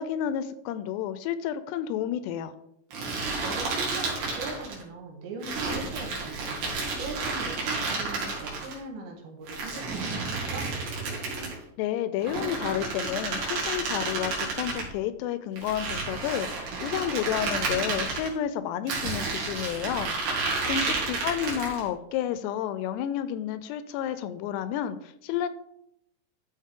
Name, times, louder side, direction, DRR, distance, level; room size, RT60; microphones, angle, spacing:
voice 1, 0.0-2.5 11.8-20.1 20.7-25.5, left 10 dB, 85° left, 13 dB, 2.6 m, -31 dB
sound 1, 2.9-4.8 5.4-8.7 9.5-11.6 12.2-14.9 15.6-18.3 18.9-21.9, right 3 dB, 70° right, 4.2 m, -31 dB
voice 2, 3.4-6.6 7.0-10.8 20.4-21.0, right 3 dB, 90° right, 1 dB, 3.9 m, -40 dB
13.0 x 5.0 x 3.7 m, 0.76 s
omnidirectional pair, 5.0 m